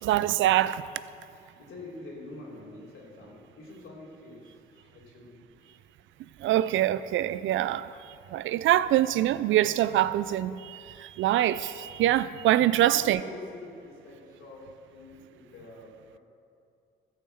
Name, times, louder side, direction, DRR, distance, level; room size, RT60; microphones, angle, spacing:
voice 1, 0.0-0.8 6.4-7.9 8.3-13.2, right 13 dB, 75° right, 0.5 m, -24 dB
voice 2, 1.3-5.8 11.1-11.3 12.8-16.2, left 2 dB, 85° left, 3.2 m, -46 dB
13.5 x 5.8 x 7.7 m
cardioid pair, 90°, 20 cm